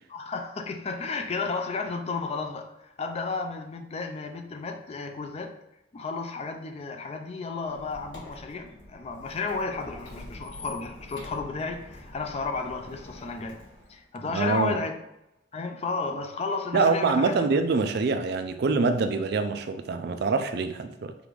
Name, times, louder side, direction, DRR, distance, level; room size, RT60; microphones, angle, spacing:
voice 1, 0.1-5.5 5.9-13.6 13.9-15.0 15.5-17.5, left 4 dB, 35° left, 0.4 m, -33 dB
Squeak, 7.6-14.0, left 1 dB, 85° left, 1.0 m, -46 dB
voice 2, 14.3-14.8 16.7-21.1, right 4 dB, 60° right, 0.4 m, -25 dB
5.0 x 2.5 x 3.2 m
head